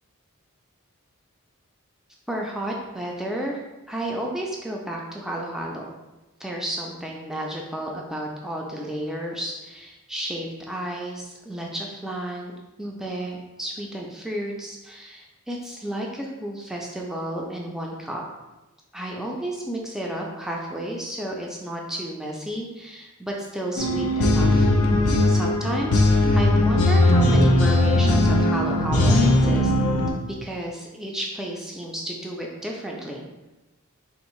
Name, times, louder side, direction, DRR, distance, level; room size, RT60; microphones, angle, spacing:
voice 1, 2.3-5.9 6.4-12.5 12.8-18.2 18.9-24.7 25.3-29.7 30.3-33.3, right 1 dB, ahead, -2 dB, 0.3 m, -32 dB
sound 1, 23.8-30.1, left 1 dB, 75° left, 0.4 m, -19 dB
3.5 x 2.4 x 3.0 m, 1.0 s
head